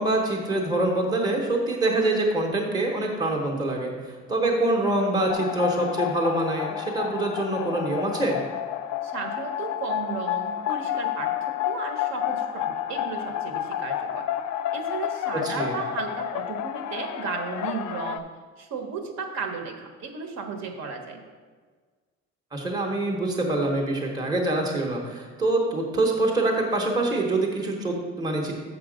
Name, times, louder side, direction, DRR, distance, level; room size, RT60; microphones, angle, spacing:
voice 1, 0.0-8.4 15.4-15.7 22.5-28.5, right 2 dB, 15° right, 0 dB, 0.8 m, -25 dB
sound 1, 5.3-18.2, left 11 dB, 70° left, 0.5 m, -30 dB
voice 2, 9.0-14.2 14.7-18.2 18.6-21.2, right 4 dB, 60° right, 4 dB, 1.0 m, -34 dB
6.8 x 6.5 x 5.0 m, 1.5 s
cardioid pair, 180°, 30 cm